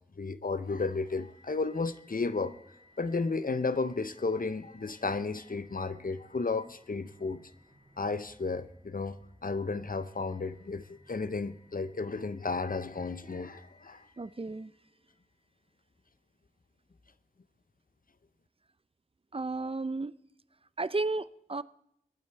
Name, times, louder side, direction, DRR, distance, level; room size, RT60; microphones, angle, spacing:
voice 1, 0.2-2.6 3.0-7.4 8.0-14.0, left 4 dB, 80° left, 0.7 m, -33 dB
sound 1, 0.6-15.7, left 1 dB, 85° right, 6.3 m, -63 dB
voice 2, 14.2-14.7 19.3-20.1 20.8-21.6, right 3 dB, 40° right, 0.5 m, -33 dB
21.5 x 8.8 x 4.6 m
wide cardioid pair, 40°, 14 cm